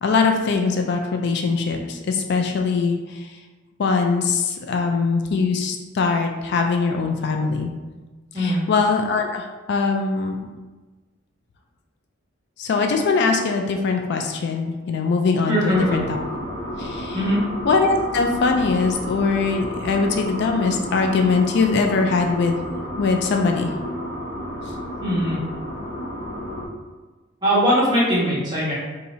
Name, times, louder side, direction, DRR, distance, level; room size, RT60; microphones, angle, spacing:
voice 1, 0.0-3.3 3.8-7.7 8.4-10.4 12.6-16.2 16.8-17.2 17.6-22.6 23.0-23.7, left 4 dB, 60° left, 4 dB, 0.3 m, -22 dB
voice 2, 15.5-16.0 17.1-17.4 25.0-25.4 27.4-28.7, equal, 20° right, -8 dB, 1.3 m, -20 dB
sound 1, 15.7-26.7, equal, 75° left, 0.9 m, -31 dB
2.7 x 2.7 x 4.1 m, 1.3 s
head